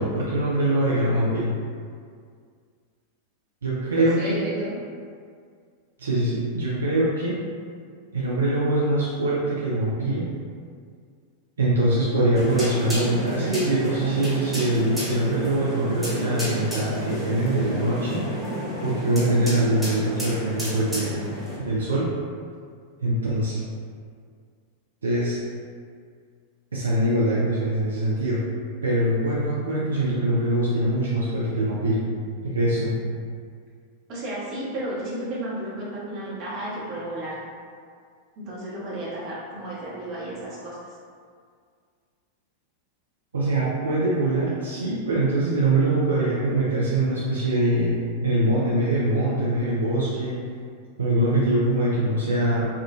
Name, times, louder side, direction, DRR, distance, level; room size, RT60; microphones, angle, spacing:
voice 1, 0.0-1.5 3.6-4.3 6.0-7.4 8.1-10.3 11.6-18.2 18.8-21.1 21.6-22.0 23.0-23.6 25.0-25.4 26.7-28.4 28.8-32.0 32.4-32.9 43.3-50.4 51.0-52.7, right 1 dB, 70° right, -7 dB, 0.5 m, -23 dB
voice 2, 3.9-4.8 34.1-37.4 38.4-40.8, right 1 dB, 40° right, -7 dB, 0.9 m, -33 dB
sound 1, 12.4-21.6, right 1 dB, 5° right, 1.3 m, -31 dB
3.6 x 2.4 x 2.3 m, 2.1 s
figure-of-eight pair, 90°, 0 cm